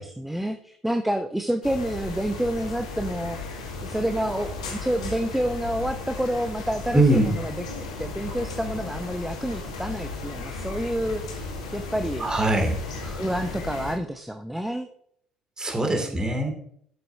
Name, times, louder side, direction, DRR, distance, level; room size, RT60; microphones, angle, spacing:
voice 1, 0.0-3.4 3.8-11.2 11.7-12.3 13.0-14.9 15.8-16.3, equal, 5° right, 7 dB, 0.8 m, -29 dB
sound 1, 1.6-14.0, left 3 dB, 75° left, 2.2 m, -35 dB
voice 2, 6.9-7.3 12.2-12.8 15.6-16.5, right 1 dB, 20° right, 4 dB, 2.5 m, -22 dB
12.0 x 7.7 x 2.8 m, 0.64 s
figure-of-eight pair, 55°, 4 cm